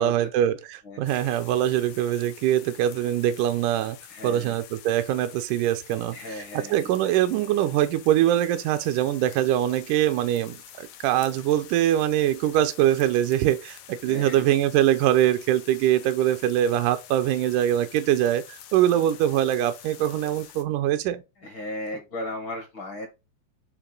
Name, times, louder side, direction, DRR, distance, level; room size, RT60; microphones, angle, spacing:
voice 1, 0.0-4.0 4.2-21.2, right 12 dB, 80° right, 1.9 m, -23 dB
sound 1, 1.1-20.6, left 10 dB, 80° left, 2.5 m, -47 dB
voice 2, 4.1-4.5 6.1-6.9 14.1-14.4 21.4-23.1, left 1 dB, 55° left, 1.4 m, -35 dB
8.7 x 3.0 x 3.9 m
omnidirectional pair, 4.0 m